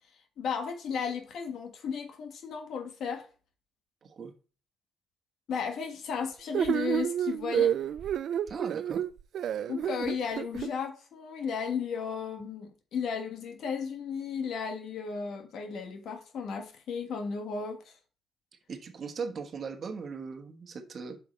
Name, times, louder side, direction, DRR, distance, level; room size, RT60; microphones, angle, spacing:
voice 1, 0.4-3.3 5.5-7.7 9.7-17.9, left 6 dB, 70° left, 1.4 m, -34 dB
voice 2, 4.0-4.3 8.5-9.0 18.7-21.2, right 5 dB, 50° right, 1.3 m, -38 dB
sound 1, 6.5-10.7, right 9 dB, 70° right, 0.4 m, -29 dB
8.1 x 5.8 x 3.2 m
cardioid pair, 90°, 0 cm